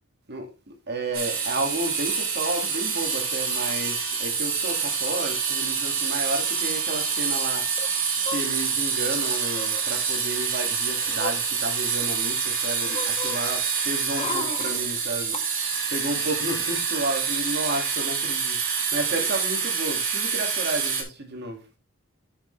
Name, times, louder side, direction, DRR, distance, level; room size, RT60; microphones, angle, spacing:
voice 1, 0.3-21.6, right 2 dB, 55° right, 2.3 m, -32 dB
sound 1, 1.1-21.0, right 6 dB, 70° right, 3.2 m, -27 dB
sound 2, 1.6-1.7 1.9-2.2 3.1-3.6 3.9-4.0 4.2-4.8 5.7-5.8 6.0-6.2 7.8-8.9 9.5-9.9 10.5-12.1 12.5-15.4 15.8-15.9, left 3 dB, 30° left, 1.2 m, -38 dB
8.8 x 6.5 x 3.4 m
head